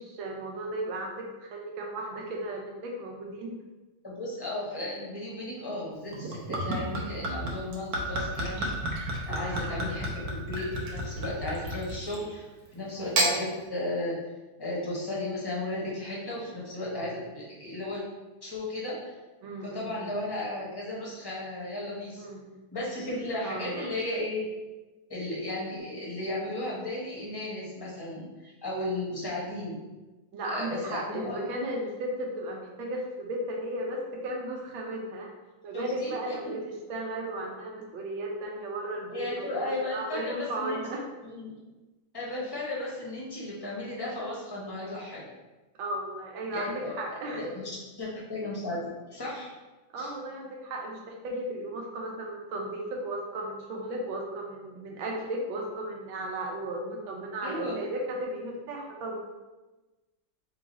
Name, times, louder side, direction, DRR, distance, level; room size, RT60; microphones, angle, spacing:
voice 1, 0.0-3.6 9.3-9.8 12.9-13.1 19.4-20.1 22.2-22.4 23.4-23.9 30.3-35.3 35.6-41.0 45.8-47.5 49.9-59.2, right 1 dB, 85° right, 0 dB, 1.5 m, -35 dB
voice 2, 4.0-8.7 9.3-14.2 14.6-18.0 18.4-19.0 19.6-22.2 22.7-24.5 25.1-29.8 30.4-31.5 35.7-36.1 36.5-36.6 39.1-40.8 41.2-41.5 42.1-45.3 46.5-47.0 47.3-47.7 48.0-49.5 50.0-50.1 57.4-57.8, left 1 dB, 20° left, -5 dB, 0.7 m, -35 dB
Gurgling / Chink clink / Liquid, 6.1-12.3 13.0-13.4, right 1 dB, 70° right, 1.3 m, -31 dB
3.7 x 3.0 x 4.0 m, 1.1 s
omnidirectional pair, 2.1 m